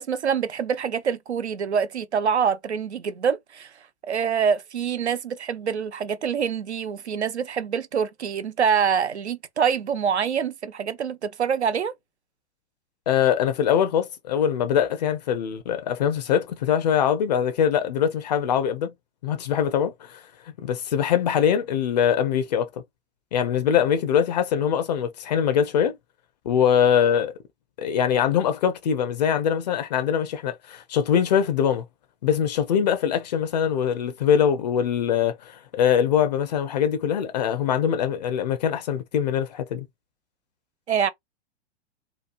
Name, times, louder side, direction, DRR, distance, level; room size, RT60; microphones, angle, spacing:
voice 1, 0.0-3.7 4.0-11.9 40.9-41.1, right 7 dB, 75° right, 0.5 m, -25 dB
voice 2, 13.1-18.9 19.2-20.2 20.6-22.7 23.3-25.9 26.5-27.3 27.8-31.8 32.2-39.9, left 8 dB, 40° left, 0.5 m, -23 dB
2.9 x 2.2 x 2.4 m
figure-of-eight pair, 105°, 34 cm